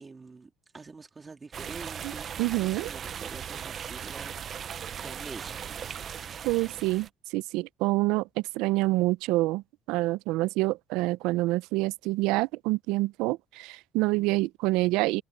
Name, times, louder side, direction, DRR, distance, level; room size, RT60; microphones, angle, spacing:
voice 1, 0.0-4.7 5.0-5.7 14.2-14.5, right 4 dB, 20° right, 2.7 m, -46 dB
sound 1, 1.5-7.1, right 8 dB, 40° right, 0.7 m, -38 dB
voice 2, 2.4-2.9 6.4-9.6 9.9-15.2, right 20 dB, 80° right, 0.5 m, -27 dB
cardioid pair, 125°, 0 cm